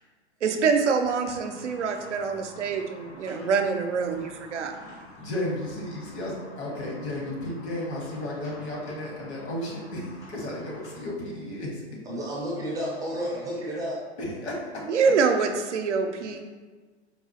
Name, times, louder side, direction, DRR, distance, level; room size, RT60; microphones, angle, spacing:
voice 1, 0.4-4.7 14.9-16.4, right 5 dB, 90° right, 5 dB, 0.5 m, -25 dB
sound 1, 1.3-11.0, left 1 dB, 85° left, 1.5 m, -48 dB
voice 2, 5.2-11.8 14.2-14.9, left 1 dB, 65° left, -3 dB, 1.5 m, -33 dB
voice 3, 12.1-14.0, equal, 10° right, -5 dB, 0.4 m, -31 dB
4.3 x 2.4 x 2.7 m, 1.4 s
hypercardioid pair, 120°, 34 cm